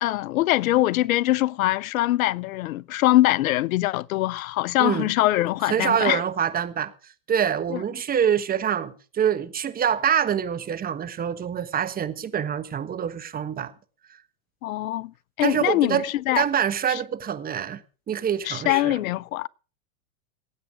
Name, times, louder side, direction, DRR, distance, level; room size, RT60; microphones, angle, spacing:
voice 1, 0.0-6.2 7.7-7.8 14.6-15.1 15.4-16.5 16.9-17.0 18.4-19.5, left 16 dB, 70° left, 0.6 m, -23 dB
voice 2, 5.6-6.9 7.3-13.7 15.4-16.0 16.4-17.8 18.1-19.0, right 8 dB, 20° right, 1.3 m, -25 dB
19.0 x 9.0 x 5.0 m
hypercardioid pair, 120°, 43 cm